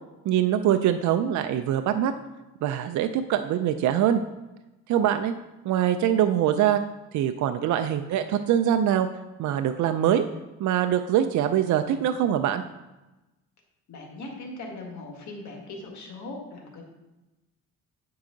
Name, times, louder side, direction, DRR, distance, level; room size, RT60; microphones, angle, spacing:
voice 1, 0.3-2.1 2.6-4.2 4.9-5.3 5.6-6.8 7.1-9.1 9.4-10.2 10.6-12.6, right 10 dB, 70° right, 8 dB, 0.5 m, -23 dB
voice 2, 13.9-16.8, left 2 dB, 70° left, 1 dB, 1.7 m, -39 dB
8.2 x 4.7 x 3.8 m, 1.0 s
cardioid pair, 90°, 30 cm